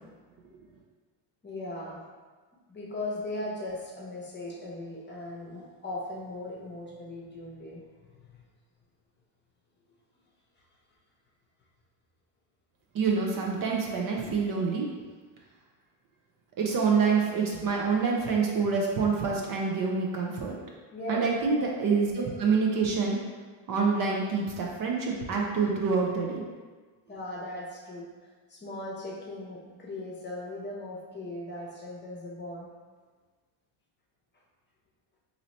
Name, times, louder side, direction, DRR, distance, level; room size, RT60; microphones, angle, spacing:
voice 1, 1.4-2.1 2.7-7.9 8.2-8.4 20.9-21.3 27.1-32.7, left 1 dB, 20° left, -3 dB, 0.9 m, -38 dB
voice 2, 12.9-14.9 16.6-20.6 21.1-23.2 23.7-26.4, right 5 dB, 45° right, -1 dB, 0.7 m, -26 dB
3.0 x 2.8 x 4.1 m, 1.4 s
supercardioid pair, 95°, 48 cm